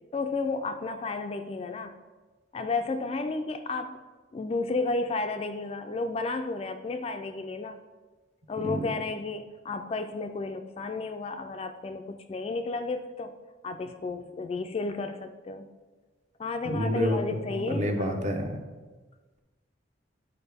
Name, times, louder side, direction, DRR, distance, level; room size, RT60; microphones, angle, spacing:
voice 1, 0.1-2.0 2.5-4.0 4.3-7.8 8.5-13.3 13.6-15.7 16.4-18.1, left 3 dB, 30° left, 8 dB, 0.3 m, -32 dB
voice 2, 16.6-18.5, equal, 40° right, 4 dB, 0.8 m, -29 dB
9.9 x 4.7 x 3.5 m, 1.3 s
head